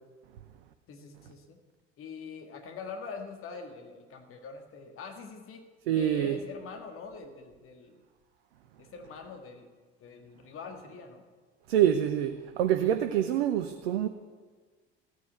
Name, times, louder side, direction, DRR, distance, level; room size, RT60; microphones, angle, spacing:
voice 1, 0.9-1.6 2.0-5.6 5.9-8.0 8.8-9.7 10.0-11.3, left 5 dB, 40° left, 4 dB, 1.9 m, -44 dB
voice 2, 5.9-6.4 11.7-14.1, right 10 dB, 65° right, 8 dB, 0.9 m, -26 dB
15.0 x 9.5 x 8.1 m, 1.5 s
figure-of-eight pair, 60°, 33 cm